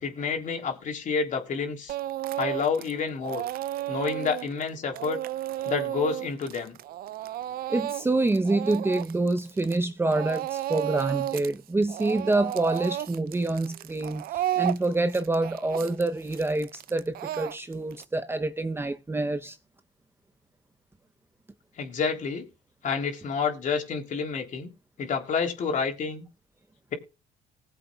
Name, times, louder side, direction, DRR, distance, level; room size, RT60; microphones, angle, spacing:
voice 1, 0.0-1.9 2.4-3.4 3.9-5.2 5.6-6.8 21.8-22.5 22.8-24.7 25.0-26.2, left 5 dB, 50° left, 3.4 m, -29 dB
Speech / Crying sobbing, 1.9-2.9 3.2-9.9 10.1-11.5 11.8-18.0, right 13 dB, 60° right, 0.6 m, -32 dB
voice 2, 7.7-19.6, right 2 dB, 15° right, 0.8 m, -27 dB
20.0 x 7.9 x 2.3 m
cardioid pair, 110°, 17 cm